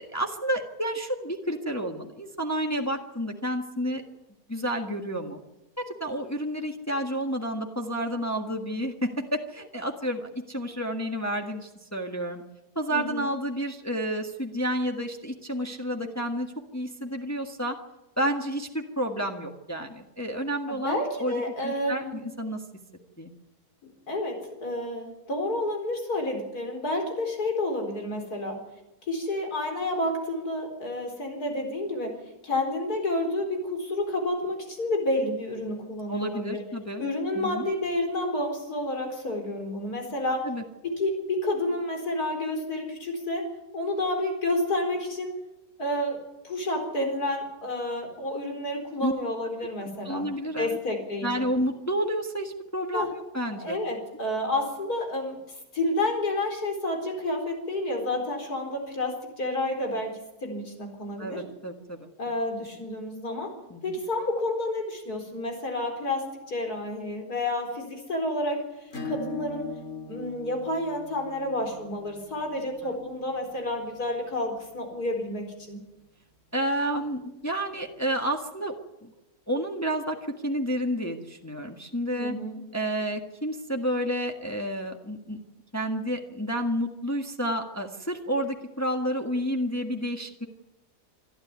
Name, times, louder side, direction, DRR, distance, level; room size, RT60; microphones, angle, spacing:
voice 1, 0.0-4.0 4.5-5.4 5.8-12.4 12.7-17.8 18.2-22.6 23.2-23.3 36.1-37.0 37.3-37.6 40.4-40.6 49.0-49.1 50.0-50.8 51.2-53.8 61.2-62.1 63.7-63.9 72.8-72.9 76.5-79.1 79.5-82.3 82.7-85.4 85.7-90.5, equal, 10° left, 3 dB, 1.5 m, -30 dB
voice 2, 12.9-13.3 20.7-22.2 24.1-28.6 29.1-32.1 32.4-36.6 37.0-40.5 40.8-43.4 43.7-45.3 45.8-46.2 46.4-50.3 50.6-51.4 52.9-53.1 53.5-61.4 62.2-63.5 63.8-69.6 70.1-75.8 82.2-82.6, left 1 dB, 75° left, 3 dB, 4.8 m, -30 dB
Acoustic guitar / Strum, 68.9-74.2, left 4 dB, 50° left, 2.9 m, -40 dB
26.0 x 12.5 x 9.6 m, 0.97 s
omnidirectional pair, 1.7 m